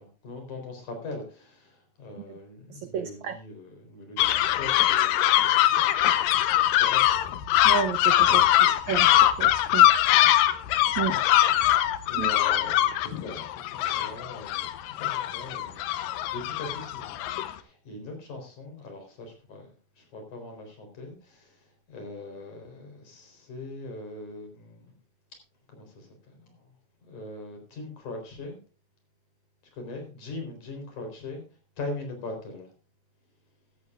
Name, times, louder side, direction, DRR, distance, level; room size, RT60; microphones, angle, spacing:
voice 1, 0.0-5.5 6.4-7.3 8.2-8.9 11.1-11.3 12.1-15.8 16.3-19.7 20.0-21.6 21.9-24.9 25.7-26.6 27.0-28.6 29.7-31.4 31.8-32.7, left 2 dB, 55° left, 4 dB, 5.2 m, -41 dB
voice 2, 2.9-3.4 7.6-8.4 8.9-9.1 9.4-9.9 11.0-11.1 12.2-12.3, right 9 dB, 85° right, 8 dB, 1.6 m, -30 dB
sound 1, 4.2-17.5, left 13 dB, 75° left, 2.4 m, -22 dB
15.5 x 13.0 x 2.4 m, 0.36 s
omnidirectional pair, 4.3 m